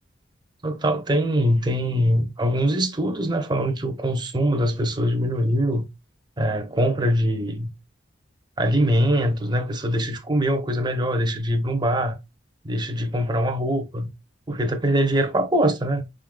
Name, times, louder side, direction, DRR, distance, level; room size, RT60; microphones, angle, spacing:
voice 1, 0.6-5.8 6.4-7.7 8.6-12.2 12.6-14.1 14.5-16.0, equal, 25° right, 0.7 m, -23 dB
5.2 x 3.8 x 2.2 m
head